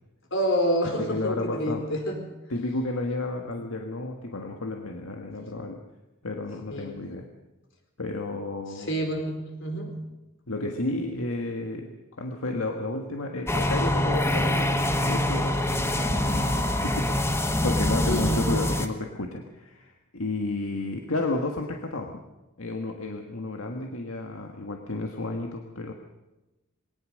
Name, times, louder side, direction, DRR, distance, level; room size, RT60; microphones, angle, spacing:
voice 1, 0.3-2.2 6.7-7.0 8.7-9.9 18.1-18.4, equal, 65° left, 4 dB, 4.4 m, -28 dB
voice 2, 1.0-1.9 2.5-5.8 6.2-7.3 8.0-8.9 10.5-22.2 22.6-25.9, left 2 dB, 85° left, 3 dB, 1.7 m, -32 dB
sound 1, 13.5-18.9, left 1 dB, 15° left, 1.2 m, -25 dB
21.5 x 18.5 x 6.5 m, 1.1 s
head